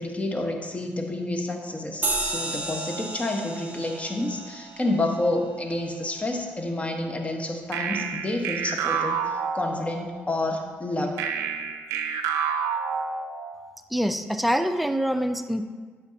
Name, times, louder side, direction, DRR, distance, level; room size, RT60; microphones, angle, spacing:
voice 1, 0.0-11.2, left 2 dB, 25° left, 3 dB, 1.3 m, -29 dB
sound 1, 2.0-6.9, right 2 dB, 35° right, 1.7 m, -34 dB
sound 2, 7.7-10.2 11.2-13.7, right 6 dB, 85° right, 0.5 m, -29 dB
voice 2, 13.9-15.6, equal, ahead, 9 dB, 0.6 m, -25 dB
10.5 x 7.1 x 2.8 m, 1.5 s
supercardioid pair, 55°, 5 cm